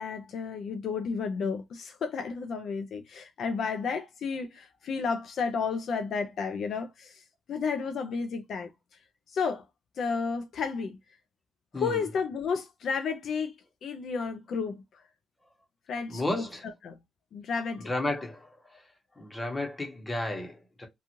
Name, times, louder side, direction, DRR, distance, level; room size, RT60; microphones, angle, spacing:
voice 1, 0.0-7.2 7.5-8.7 9.3-9.6 10.0-11.0 11.7-13.5 13.8-14.8 15.9-17.0 17.3-17.9, left 5 dB, 60° left, 0.4 m, -32 dB
voice 2, 16.1-16.6 17.9-18.4 19.2-20.9, left 2 dB, 15° left, 0.9 m, -32 dB
2.9 x 2.4 x 2.5 m
wide cardioid pair, 170°, 0 cm